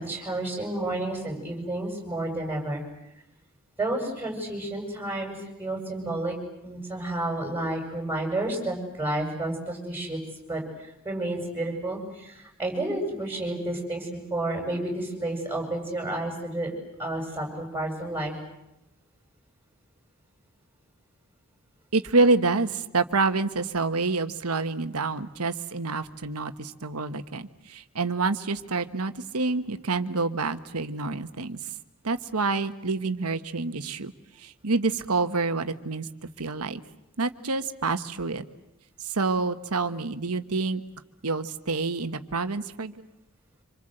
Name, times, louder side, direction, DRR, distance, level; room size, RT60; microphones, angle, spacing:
voice 1, 0.0-2.8 3.8-6.4 6.6-10.2 10.5-16.7 17.0-18.3, right 1 dB, 10° right, 2 dB, 7.8 m, -31 dB
voice 2, 21.9-31.6 32.0-34.1 34.4-36.1 36.4-36.8 37.2-38.4 39.0-40.8 41.2-43.1, right 3 dB, 85° right, 10 dB, 1.4 m, -27 dB
27.0 x 26.5 x 7.9 m, 0.86 s
head